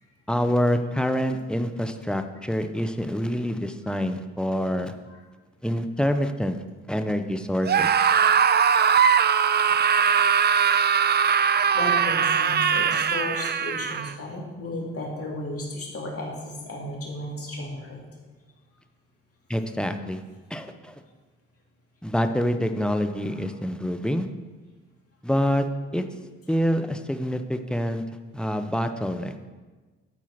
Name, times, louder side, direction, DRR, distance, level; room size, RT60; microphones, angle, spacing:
voice 1, 0.3-4.9 5.6-6.6 6.9-7.9 19.5-20.2 20.5-20.9 22.0-24.3 25.2-25.7 25.9-26.0 26.5-28.0 28.3-29.3, equal, 5° left, 7 dB, 0.9 m, -26 dB
Screaming, 7.6-14.1, right 7 dB, 35° right, 0.5 m, -21 dB
voice 2, 11.4-18.0, left 1 dB, 50° left, -2 dB, 3.0 m, -34 dB
12.0 x 4.5 x 5.9 m, 1.3 s
hypercardioid pair, 50°, 30 cm